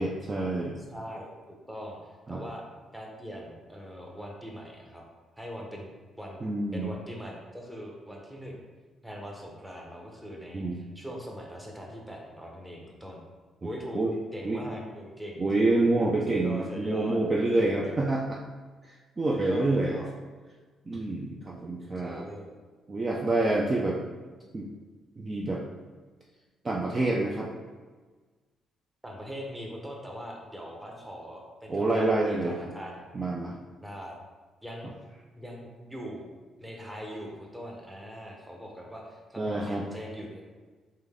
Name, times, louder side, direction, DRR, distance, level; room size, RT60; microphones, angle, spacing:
voice 1, 0.0-0.8 2.3-2.4 6.4-6.9 10.5-10.8 13.9-14.1 14.4-14.8 15.4-18.2 19.2-20.0 20.9-22.3 22.9-23.9 24.5-24.7 25.2-25.6 26.6-27.5 31.7-32.6 33.1-33.6 39.4-39.9, right 2 dB, 30° right, -2 dB, 0.4 m, -27 dB
voice 2, 0.8-2.0 2.3-2.6 2.9-5.0 5.4-5.9 6.1-6.4 6.7-8.6 9.0-13.2 13.6-14.0 14.3-15.7 16.4-17.2 17.5-17.6 17.8-17.9 19.3-20.1 22.0-22.5 23.2-23.3 23.9-24.0 29.0-33.0 33.8-34.2 34.6-34.9 35.4-36.3 36.6-40.5, equal, 10° right, -1 dB, 0.9 m, -41 dB
3.8 x 3.1 x 3.6 m, 1.4 s
cardioid pair, 90°, 0 cm